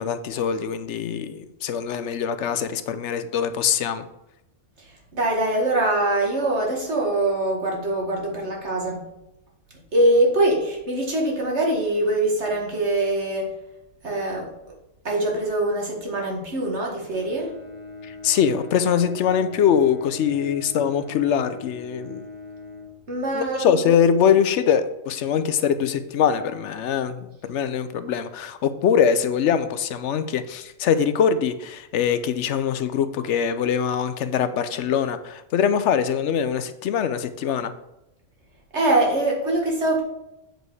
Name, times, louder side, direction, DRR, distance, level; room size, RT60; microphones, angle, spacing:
voice 1, 0.0-4.0 18.0-22.2 23.3-37.7, left 8 dB, 75° left, 11 dB, 0.9 m, -23 dB
voice 2, 4.8-9.0 9.9-13.5 14.0-14.5 15.0-17.5 23.1-24.0 38.7-40.0, right 1 dB, 65° right, -1 dB, 2.1 m, -23 dB
Bowed string instrument, 16.9-23.6, left 3 dB, 10° right, 1.0 m, -41 dB
7.7 x 5.2 x 4.8 m, 0.88 s
omnidirectional pair, 1.3 m